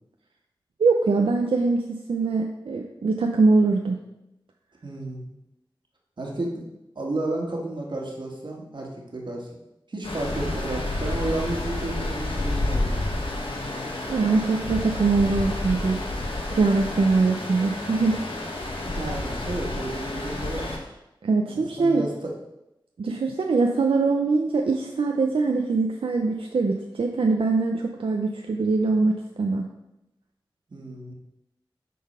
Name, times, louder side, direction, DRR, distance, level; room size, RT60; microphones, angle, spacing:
voice 1, 0.8-4.0 14.1-16.0 16.5-18.2 21.2-22.0 23.0-29.7, right 3 dB, 90° right, 2 dB, 0.6 m, -22 dB
voice 2, 4.8-5.3 6.2-6.6 6.9-9.5 9.9-13.0 18.8-20.8 21.5-22.3 30.7-31.1, right 2 dB, 60° right, -1 dB, 1.7 m, -32 dB
Stream, 10.0-20.8, left 2 dB, 80° left, 1.3 m, -30 dB
8.3 x 4.0 x 5.5 m, 0.90 s
wide cardioid pair, 75°, 9 cm